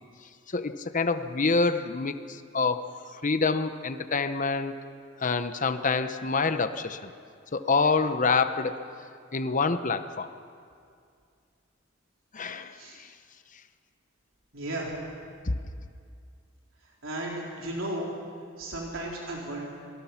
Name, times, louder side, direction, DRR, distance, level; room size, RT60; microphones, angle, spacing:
voice 1, 0.5-2.9 3.1-4.7 5.2-7.1 7.5-8.8 9.3-10.3 12.3-12.7 15.5-15.6, left 4 dB, 40° left, 10 dB, 0.9 m, -26 dB
voice 2, 14.5-14.9 17.0-18.1 18.6-19.7, right 1 dB, 80° right, -3 dB, 3.8 m, -34 dB
26.5 x 19.5 x 5.9 m, 2.3 s
head